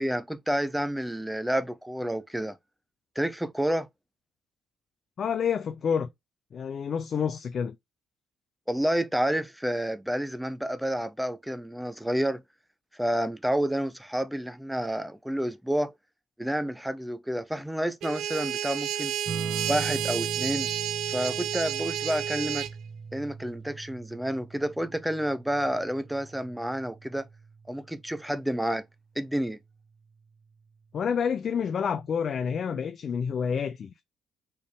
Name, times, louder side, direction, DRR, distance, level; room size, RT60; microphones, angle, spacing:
voice 1, 0.0-2.6 3.2-3.9 8.7-12.4 13.0-15.9 16.4-19.1 19.7-20.7 21.1-22.7 23.1-27.3 27.7-28.8 29.2-29.6, equal, 5° right, 0.6 m, -29 dB
voice 2, 5.2-6.1 6.5-7.8 30.9-34.0, left 7 dB, 50° left, 0.5 m, -28 dB
sound 1, 18.0-22.7, right 10 dB, 65° right, 0.4 m, -31 dB
sound 2, 19.3-28.3 29.8-30.3, right 5 dB, 35° right, 1.1 m, -41 dB
4.2 x 3.5 x 3.2 m
hypercardioid pair, 50°, 0 cm